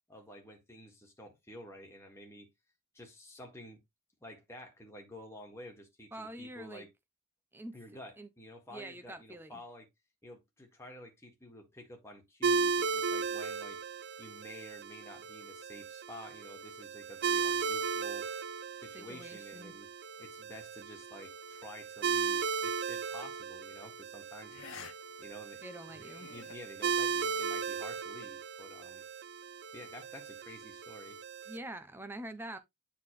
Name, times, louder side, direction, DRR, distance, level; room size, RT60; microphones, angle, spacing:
voice 1, 0.1-2.5 2.9-3.8 4.2-6.9 7.7-9.9 10.2-13.8 14.2-18.3 18.7-19.9 20.2-24.9 25.2-25.6 26.0-29.0 29.7-31.2, left 1 dB, 10° left, 1.8 m, -50 dB
voice 2, 6.1-6.9 7.5-7.8 8.2-8.3 8.7-9.6 18.9-19.7 25.6-26.3 31.5-32.6, right 1 dB, 10° right, 0.6 m, -45 dB
sound 1, 12.4-31.6, right 5 dB, 50° right, 0.5 m, -36 dB
sound 2, 22.9-23.1 24.5-24.9 25.3-25.4 25.9-26.5, left 7 dB, 60° left, 0.7 m, -49 dB
9.6 x 3.9 x 3.1 m
head